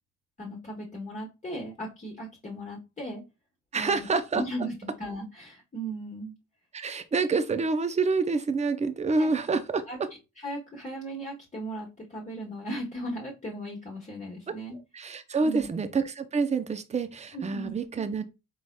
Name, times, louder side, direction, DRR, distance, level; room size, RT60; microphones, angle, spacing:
voice 1, 0.4-3.2 3.7-4.1 4.3-6.3 9.2-9.3 9.9-10.0 10.4-14.8 15.4-15.7 17.3-17.7, right 1 dB, 25° left, 1.2 m, -37 dB
voice 2, 3.7-4.4 6.7-10.1 14.5-14.6 14.9-18.3, right 4 dB, 20° right, 0.6 m, -27 dB
4.8 x 3.9 x 2.2 m
cardioid pair, 90°, 30 cm